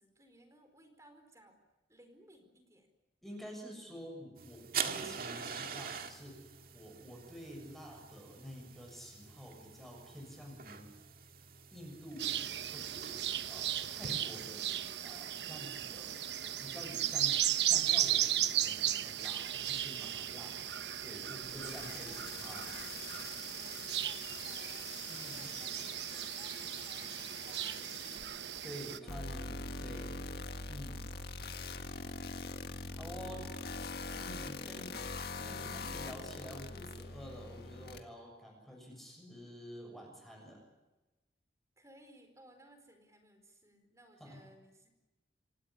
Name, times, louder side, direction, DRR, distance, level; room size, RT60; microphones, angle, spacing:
voice 1, 0.0-1.6 1.9-2.9 21.9-28.2 28.9-29.2 29.6-30.3 31.7-34.0 41.8-44.9, right 1 dB, 20° right, 7 dB, 4.6 m, -62 dB
voice 2, 3.2-10.9 11.7-14.8 15.0-20.6 21.0-22.7 25.1-25.5 28.6-30.2 30.7-31.1 33.0-33.4 34.1-35.0 35.4-40.6 44.2-44.4, equal, ahead, 1 dB, 7.1 m, -49 dB
sound 1, 4.4-14.1, right 7 dB, 55° right, 2.1 m, -44 dB
sound 2, 12.2-29.0, right 11 dB, 75° right, 1.1 m, -36 dB
sound 3, 21.4-28.2 28.6-28.7 29.1-38.0, left 3 dB, 60° left, 1.8 m, -44 dB
27.0 x 18.0 x 9.9 m, 1.1 s
head